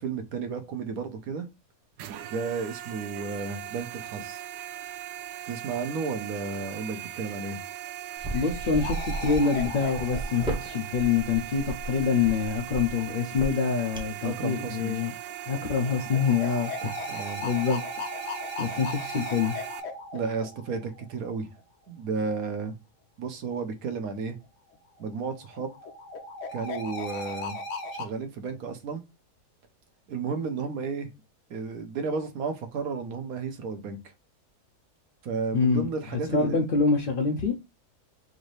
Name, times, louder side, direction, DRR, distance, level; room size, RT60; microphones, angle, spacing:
voice 1, 0.0-1.5 2.3-4.4 5.5-7.6 14.2-15.0 17.1-17.4 20.1-21.5 21.9-22.7 23.2-24.4 25.0-25.7 26.5-27.6 27.9-29.0 30.1-31.1 31.5-34.0 35.2-36.6, right 5 dB, 65° right, 1.3 m, -33 dB
sound 1, 2.0-19.8, right 12 dB, 90° right, 1.2 m, -39 dB
sound 2, 8.2-14.3, right 2 dB, 5° right, 0.7 m, -35 dB
voice 2, 8.3-15.1 15.5-16.9 17.4-17.8 18.6-19.6 35.5-37.5, left 5 dB, 55° left, 0.6 m, -26 dB
sound 3, 8.8-11.4 14.9-21.4 24.9-28.1, left 2 dB, 80° left, 1.4 m, -38 dB
4.9 x 2.7 x 3.2 m
omnidirectional pair, 1.7 m